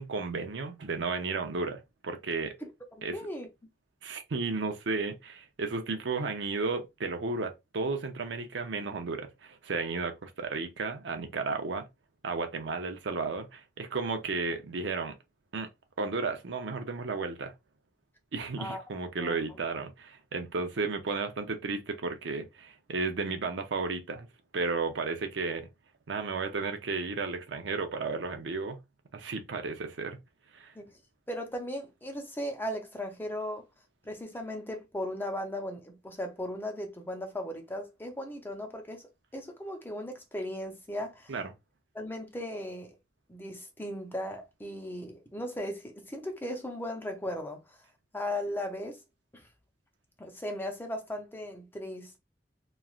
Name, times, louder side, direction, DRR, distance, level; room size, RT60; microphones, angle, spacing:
voice 1, 0.0-2.5 3.0-3.2 4.0-11.9 12.2-15.1 15.5-15.7 16.0-17.5 18.3-24.3 24.5-25.7 26.1-28.8 29.1-30.2 30.5-30.7 41.3-41.5, right 4 dB, 85° right, 0.6 m, -33 dB
voice 2, 3.1-3.5 18.6-18.8 19.2-19.3 30.8-30.9 31.3-33.7 34.0-39.0 39.3-41.3 41.9-43.0 43.3-47.8 48.1-49.0 49.3-49.5 50.2-52.2, left 1 dB, 10° left, 0.6 m, -37 dB
3.1 x 2.4 x 2.4 m
head